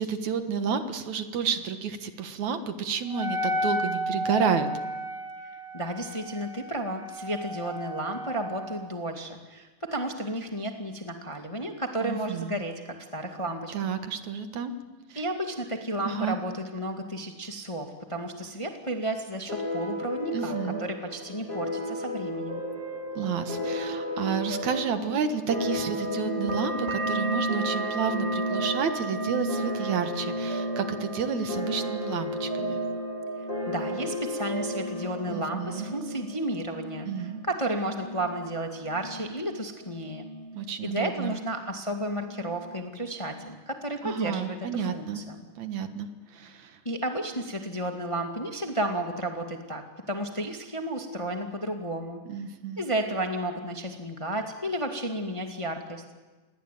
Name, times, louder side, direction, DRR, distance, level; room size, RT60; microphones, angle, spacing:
voice 1, 0.0-4.7 12.0-12.6 13.7-14.8 15.1-15.2 16.0-16.4 20.3-20.8 23.2-32.8 35.3-35.9 37.1-37.4 40.5-41.3 44.0-45.2 45.6-46.8 52.3-52.9, right 6 dB, 70° right, 8 dB, 2.8 m, -31 dB
Wind instrument woodwind instrument, 3.1-8.9, equal, 5° right, 2.3 m, -33 dB
voice 2, 5.7-13.7 15.1-22.6 33.7-40.3 40.8-45.5 46.8-52.2 52.8-56.0, right 1 dB, 10° left, 4 dB, 1.6 m, -32 dB
sound 1, 19.5-36.6, left 1 dB, 35° left, 5.5 m, -34 dB
sound 2, 25.5-40.7 41.0-41.8 42.1-42.8 43.2-43.5, right 1 dB, 25° right, 2.4 m, -35 dB
28.5 x 21.5 x 9.3 m, 1.3 s
omnidirectional pair, 3.6 m